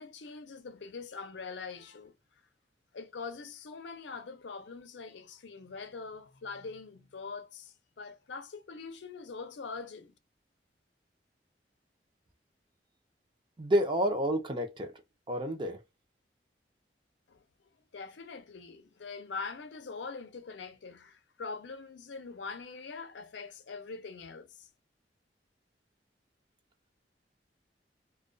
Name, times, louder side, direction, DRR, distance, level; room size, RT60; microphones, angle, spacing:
voice 1, 0.0-2.1 2.9-10.2 17.3-17.4 17.9-24.7, left 4 dB, 90° left, 0.5 m, -43 dB
voice 2, 13.6-15.0 15.3-15.8, equal, 25° right, 0.5 m, -29 dB
2.2 x 2.2 x 2.4 m
head